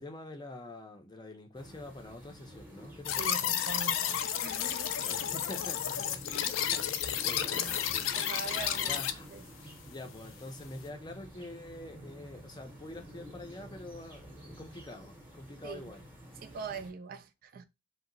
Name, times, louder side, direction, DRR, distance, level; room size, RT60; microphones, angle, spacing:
voice 1, 0.0-3.4 5.0-8.1 8.8-9.3 9.9-16.1, left 2 dB, 20° left, 0.5 m, -46 dB
sound 1, 1.5-16.9, right 1 dB, 10° right, 0.8 m, -51 dB
sound 2, 3.1-9.1, left 10 dB, 90° left, 0.3 m, -32 dB
voice 2, 3.2-4.9 6.3-6.6 8.0-9.0 9.3-9.5 15.6-15.9 16.4-17.6, right 5 dB, 50° right, 0.3 m, -42 dB
sound 3, 6.0-14.9, right 2 dB, 75° right, 0.8 m, -53 dB
2.8 x 2.1 x 3.7 m
head